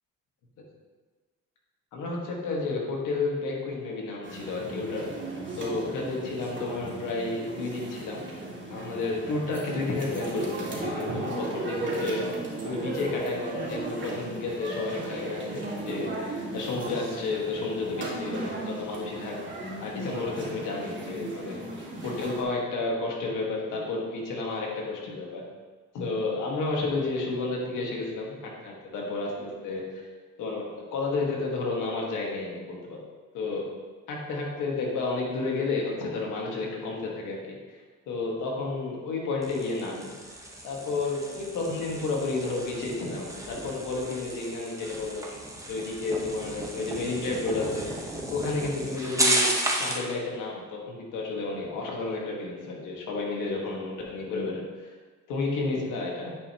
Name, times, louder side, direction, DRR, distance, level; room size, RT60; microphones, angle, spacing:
voice 1, 1.9-5.1 5.6-8.2 8.7-21.6 22.0-25.4 25.9-30.1 30.4-33.0 33.3-33.6 34.1-37.6 38.1-40.1 40.6-45.3 45.7-49.5 49.8-54.9 55.3-56.3, left 3 dB, 85° left, -2 dB, 1.7 m, -31 dB
sound 1, 4.2-22.4, right 2 dB, 40° right, 2.1 m, -36 dB
sound 2, 39.4-50.1, right 1 dB, 10° right, 1.0 m, -33 dB
9.5 x 5.1 x 2.9 m, 1.4 s
cardioid pair, 90°, 30 cm